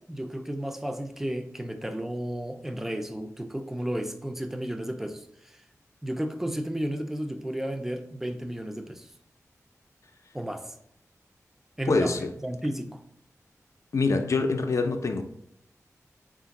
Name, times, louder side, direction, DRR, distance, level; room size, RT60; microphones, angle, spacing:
voice 1, 0.0-5.6 6.0-9.1 10.3-10.7 11.8-12.1 12.4-13.0, right 1 dB, 5° right, 0.4 m, -33 dB
voice 2, 11.9-12.3 13.9-15.2, left 3 dB, 60° left, 0.5 m, -25 dB
3.8 x 2.5 x 3.9 m
wide cardioid pair, 80°, 6 cm